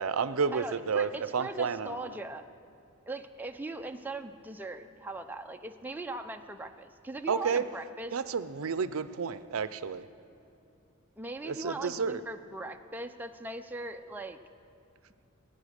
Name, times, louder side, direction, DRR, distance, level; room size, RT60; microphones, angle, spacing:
voice 1, 0.0-2.1 7.3-7.6 8.1-10.1 11.5-12.2, right 5 dB, 70° right, 13 dB, 0.5 m, -31 dB
voice 2, 0.5-2.4 3.1-8.2 11.2-14.4, right 2 dB, 10° right, 5 dB, 0.4 m, -40 dB
20.0 x 9.2 x 6.5 m, 2.6 s
head